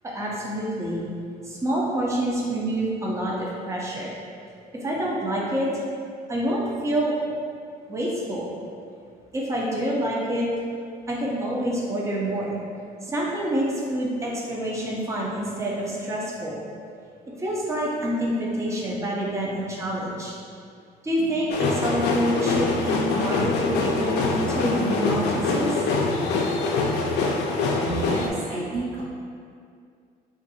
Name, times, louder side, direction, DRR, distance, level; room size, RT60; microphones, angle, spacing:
voice 1, 0.0-1.0 1.4-4.1 4.8-5.7 6.3-7.3 7.9-8.5 9.3-10.5 11.1-12.6 13.0-16.6 17.3-20.3 21.0-25.7, right 1 dB, 15° right, -4 dB, 0.6 m, -27 dB
sound 1, 21.5-28.3, left 3 dB, 80° left, 0.4 m, -24 dB
voice 2, 27.8-29.1, right 2 dB, 75° right, -7 dB, 1.1 m, -30 dB
2.6 x 2.6 x 4.0 m, 2.3 s
cardioid pair, 110°, 17 cm